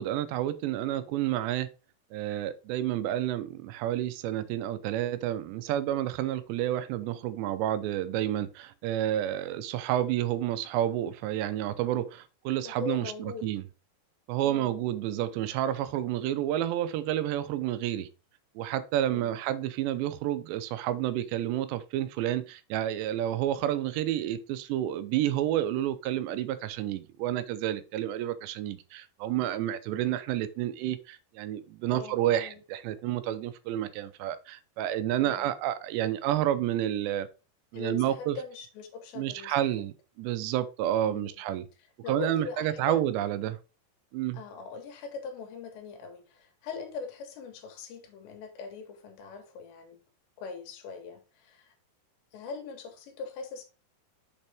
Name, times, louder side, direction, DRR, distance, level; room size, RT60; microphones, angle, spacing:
voice 1, 0.0-1.7 2.1-13.6 14.3-18.1 18.6-37.3 37.7-38.4 39.2-41.7 42.1-43.6 44.1-44.4, right 12 dB, 85° right, 2.9 m, -30 dB
voice 2, 12.7-13.5 14.4-14.8 19.1-19.4 31.9-32.6 35.2-35.5 37.7-39.9 41.1-41.3 42.0-43.0 44.3-50.0 50.4-51.7 52.3-53.6, left 5 dB, 85° left, 3.5 m, -41 dB
7.1 x 5.4 x 3.5 m
omnidirectional pair, 4.9 m